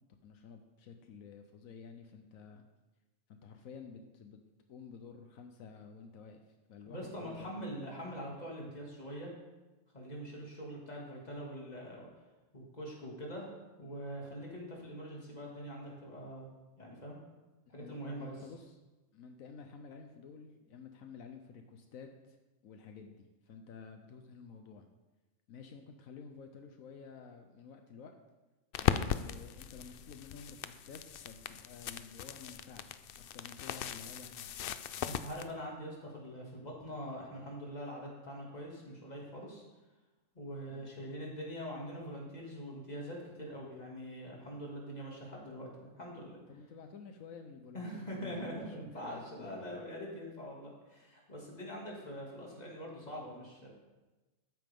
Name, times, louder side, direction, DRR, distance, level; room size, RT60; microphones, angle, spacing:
voice 1, 0.2-2.6 3.3-4.4 4.7-7.6 17.7-18.8 19.1-22.4 22.6-24.9 25.5-28.1 28.8-34.7 34.9-35.2 40.7-40.9 46.5-49.8, left 5 dB, 80° left, 5 dB, 1.2 m, -51 dB
voice 2, 6.9-9.3 9.9-12.1 12.5-16.5 16.8-17.2 17.7-18.3 35.0-39.6 40.3-46.4 47.7-53.7, equal, 30° left, -3 dB, 2.4 m, -43 dB
sound 1, 28.7-35.5, left 9 dB, 65° left, 0.5 m, -38 dB
13.0 x 9.2 x 3.6 m, 1.1 s
omnidirectional pair, 1.4 m